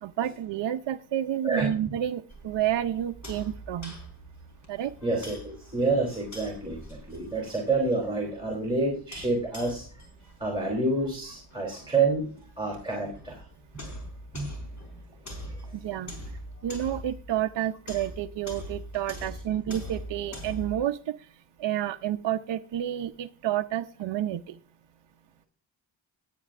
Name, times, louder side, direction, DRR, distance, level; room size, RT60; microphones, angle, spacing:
voice 1, 0.0-3.9 4.7-4.9 15.8-16.1 16.6-21.1 21.6-24.5, right 11 dB, 65° right, 6 dB, 0.6 m, -30 dB
sound 1, 2.3-20.8, equal, 35° left, 4.2 m, -43 dB
voice 2, 5.0-9.9 10.4-12.2 12.6-13.4 14.3-14.5, right 3 dB, 10° right, -1 dB, 3.1 m, -28 dB
18.5 x 9.2 x 2.5 m, 0.40 s
wide cardioid pair, 125°, 48 cm